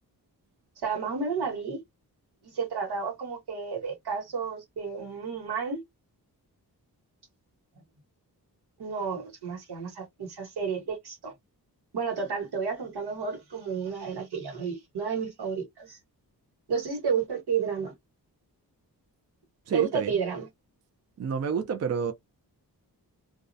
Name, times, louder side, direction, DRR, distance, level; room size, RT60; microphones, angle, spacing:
voice 1, 0.8-1.8 2.5-5.8 8.8-11.3 11.9-16.0 16.7-18.0 19.7-20.5, right 6 dB, 90° right, 1.2 m, -31 dB
voice 2, 19.7-20.1 21.2-22.1, right 6 dB, 45° right, 0.4 m, -29 dB
2.4 x 2.0 x 2.5 m
wide cardioid pair, 180°, 38 cm